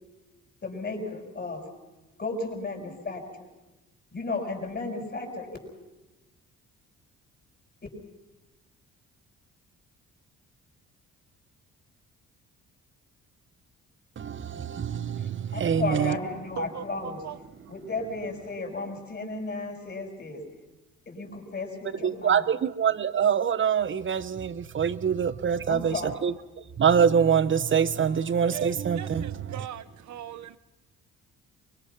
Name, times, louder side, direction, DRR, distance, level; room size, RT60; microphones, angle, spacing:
voice 1, 0.6-1.6 2.2-3.2 4.1-5.5 15.5-17.2 17.7-20.4 21.1-22.5 25.7-26.2, left 3 dB, 35° left, 6.0 m, -34 dB
voice 2, 14.2-16.1 22.0-25.9 26.2-26.3 26.8-29.6, right 7 dB, 40° right, 1.0 m, -25 dB
voice 3, 16.6-17.4 28.5-30.6, right 11 dB, 70° right, 1.1 m, -40 dB
24.0 x 21.0 x 5.9 m
cardioid pair, 90°, 30 cm